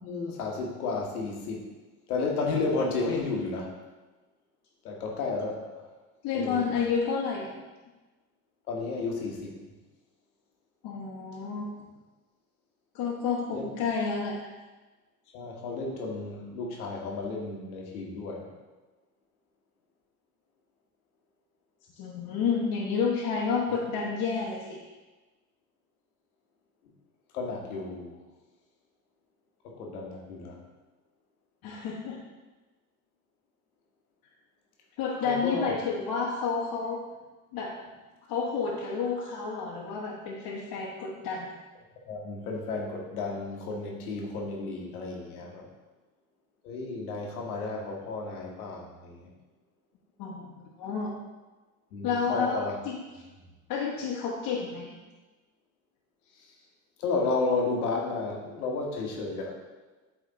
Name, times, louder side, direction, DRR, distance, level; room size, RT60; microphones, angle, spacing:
voice 1, 0.0-1.7 2.1-3.7 4.8-5.8 6.3-6.9 8.7-9.6 13.5-13.7 15.3-18.5 27.3-28.1 29.6-30.6 35.2-35.7 42.1-45.7 46.6-49.3 51.9-52.7 57.0-59.6, left 3 dB, 80° left, 0 dB, 1.4 m, -32 dB
voice 2, 6.2-7.5 10.8-11.6 12.9-14.5 22.0-24.8 31.6-32.2 35.0-37.0 37.5-37.7 38.3-41.5 50.2-51.1 52.0-53.0 53.7-55.0, left 5 dB, 55° left, -4 dB, 1.2 m, -30 dB
8.2 x 3.5 x 3.9 m, 1.2 s
hypercardioid pair, 70°, 44 cm